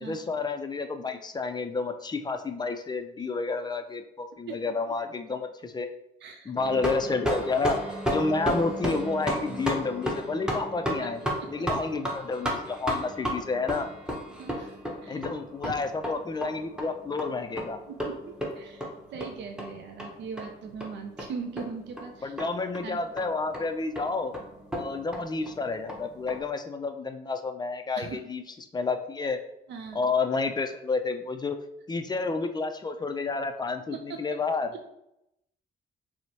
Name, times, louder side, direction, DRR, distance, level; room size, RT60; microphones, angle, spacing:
voice 1, 0.0-5.9 6.5-7.8 8.1-11.2 11.5-13.9 15.1-17.8 22.2-24.3 24.8-28.4 28.7-29.4 29.9-31.6 31.9-34.7, left 4 dB, 20° left, 7 dB, 0.3 m, -30 dB
voice 2, 6.2-6.8 11.0-11.1 11.4-11.5 14.3-15.2 15.6-15.7 18.0-22.3 22.8-23.0 28.0-28.2 29.7-30.0, right 5 dB, 65° right, 5 dB, 0.4 m, -40 dB
sound 1, 6.6-26.4, equal, 5° right, 0.8 m, -34 dB
4.3 x 2.1 x 2.7 m, 0.81 s
cardioid pair, 90°, 20 cm